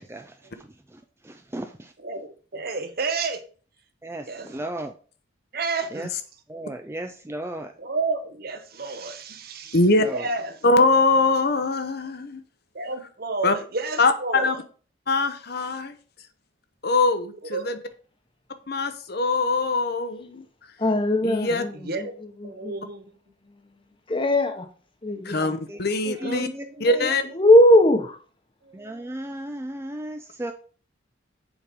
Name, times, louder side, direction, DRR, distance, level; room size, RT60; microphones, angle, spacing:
voice 1, 0.0-1.9 4.0-4.9 5.9-6.1 6.5-7.7 10.0-10.3 25.4-25.8 26.1-27.2 28.7-30.5, right 1 dB, 15° right, 0.4 m, -35 dB
voice 2, 2.0-3.4 4.3-4.5 5.5-6.1 7.8-9.8 10.1-10.6 12.7-14.6 17.5-17.7 21.7-22.1 22.4-23.0 26.2-26.8 28.6-29.2, right 3 dB, 55° right, 1.1 m, -31 dB
voice 3, 9.7-10.1 10.6-12.4 13.4-13.5 14.0-14.6 15.1-15.9 16.8-17.8 18.7-20.4 21.2-21.6 25.2-26.5 26.8-27.2, left 3 dB, 55° left, 0.9 m, -22 dB
voice 4, 20.8-21.9 22.4-22.7 24.1-24.7 25.0-25.5 27.3-28.2, left 1 dB, 25° left, 1.1 m, -19 dB
7.2 x 4.9 x 5.2 m
head